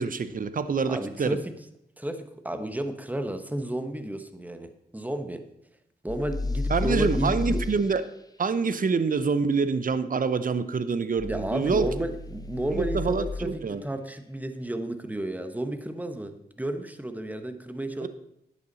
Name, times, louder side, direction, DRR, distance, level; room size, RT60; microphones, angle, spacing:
voice 1, 0.0-1.4 6.7-8.0 8.4-11.9 12.7-13.8 18.0-18.1, right 5 dB, 50° right, 13 dB, 0.7 m, -26 dB
voice 2, 0.9-1.5 2.0-5.4 6.0-7.6 11.2-18.1, right 1 dB, 10° right, 8 dB, 1.1 m, -32 dB
sound 1, 6.1-7.7 11.2-13.3, left 3 dB, 20° left, 0.9 m, -31 dB
10.5 x 8.5 x 4.0 m, 0.79 s
cardioid pair, 70°, 18 cm